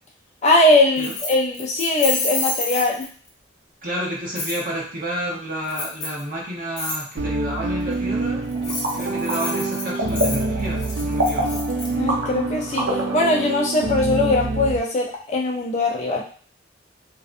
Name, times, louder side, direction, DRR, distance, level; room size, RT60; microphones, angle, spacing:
voice 1, 0.4-3.1 12.0-12.8 13.1-16.2, left 2 dB, 35° left, -1 dB, 0.4 m, -20 dB
Keys jangling, 1.0-3.3 4.4-4.6 5.7-6.2 6.8-7.0 8.5-11.9, left 3 dB, 70° left, 0.8 m, -29 dB
voice 2, 3.8-11.6, equal, 45° right, -4 dB, 0.8 m, -30 dB
sound 1, 7.2-14.8, right 3 dB, 70° right, 0.3 m, -26 dB
sound 2, 8.5-13.6, right 1 dB, 90° right, 0.7 m, -28 dB
2.6 x 2.2 x 2.4 m, 0.43 s
head